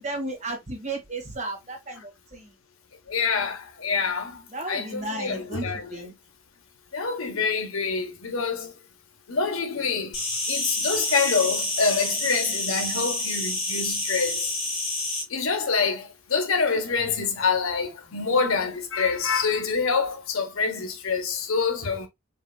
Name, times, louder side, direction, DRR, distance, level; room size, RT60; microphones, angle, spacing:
voice 1, 0.0-2.5 4.5-5.6 5.9-6.1, right 2 dB, 35° right, 1.7 m, -34 dB
voice 2, 3.1-4.4 4.7-6.1 6.9-8.7 9.3-10.2 10.5-14.4 15.3-22.1, left 5 dB, 90° left, 1.0 m, -26 dB
Insect, 10.1-15.2, left 2 dB, 50° left, 2.7 m, -28 dB
4.7 x 3.2 x 2.2 m
head